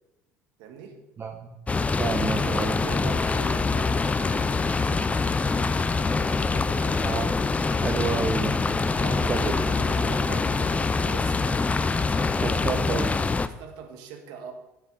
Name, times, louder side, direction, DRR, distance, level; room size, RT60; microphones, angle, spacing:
voice 1, 0.6-1.0 2.4-7.1 9.0-11.7 12.0-12.8 13.4-14.5, right 6 dB, 75° right, 5 dB, 1.5 m, -42 dB
voice 2, 1.2-1.5 2.0-2.8 7.0-7.3 7.8-8.6 9.3-9.5 12.4-13.1, right 5 dB, 35° right, 3 dB, 1.0 m, -29 dB
sound 1, 1.7-13.5, left 4 dB, 20° left, 0.5 m, -25 dB
9.2 x 8.4 x 3.9 m, 0.96 s
supercardioid pair, 85°, 7 cm